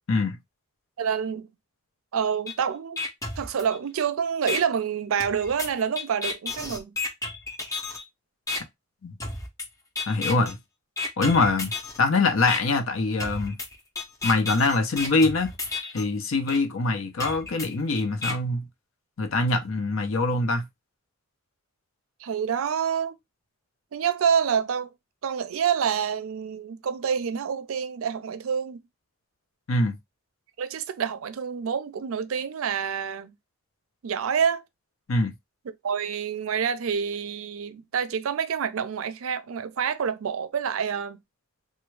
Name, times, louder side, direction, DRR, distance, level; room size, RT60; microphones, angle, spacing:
voice 1, 1.0-1.5 2.1-3.0 3.4-6.9 22.2-23.1 23.9-24.9 25.2-28.8 30.6-33.3 34.0-34.6 35.8-41.2, right 7 dB, 85° right, 0.4 m, -27 dB
sound 1, 2.5-2.6 3.0-4.0 4.5-4.6 5.2-8.0 8.5-8.6 9.2-9.7 10.0-10.5 11.0-12.0 12.5-12.6 13.2-16.0 16.5-16.6 17.2-18.3, left 3 dB, 15° left, 0.5 m, -32 dB
voice 2, 10.1-10.6 11.2-11.7 12.0-13.6 14.2-15.5 15.9-18.7 19.2-20.6 29.7-30.0 35.1-35.3, left 3 dB, 80° left, 0.6 m, -23 dB
3.4 x 2.2 x 3.1 m
head